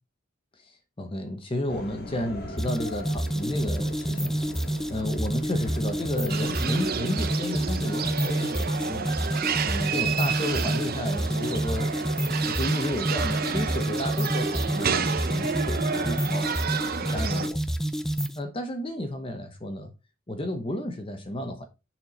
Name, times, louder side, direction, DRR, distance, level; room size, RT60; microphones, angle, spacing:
voice 1, 0.6-9.1 9.6-12.0 12.4-16.5 17.0-17.8 18.3-19.9 20.3-21.6, left 1 dB, 25° left, 0.8 m, -32 dB
sound 1, 1.7-7.0, left 1 dB, 50° left, 1.8 m, -41 dB
sound 2, 2.6-18.4, right 1 dB, ahead, 0.4 m, -28 dB
sound 3, 6.3-17.5, right 6 dB, 45° right, 0.6 m, -30 dB
6.7 x 4.5 x 4.2 m
head